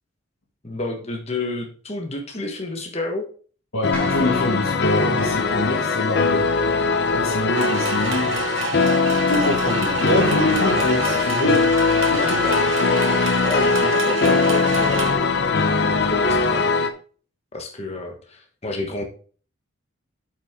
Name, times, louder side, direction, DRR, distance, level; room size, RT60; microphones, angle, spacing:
voice 1, 0.6-3.3 12.1-13.0 13.4-16.9 17.5-19.0, left 2 dB, 30° left, 3 dB, 1.3 m, -31 dB
voice 2, 3.7-6.5 7.1-8.4 9.3-11.7 12.1-12.4, left 1 dB, 90° left, -3 dB, 2.1 m, -25 dB
sound 1, 3.8-16.9, left 4 dB, 55° left, 0.7 m, -20 dB
sound 2, 3.9-6.3, right 2 dB, 5° left, 3.2 m, -38 dB
sound 3, 7.5-15.1, right 5 dB, 75° right, 1.2 m, -29 dB
8.0 x 5.9 x 3.7 m, 0.41 s
head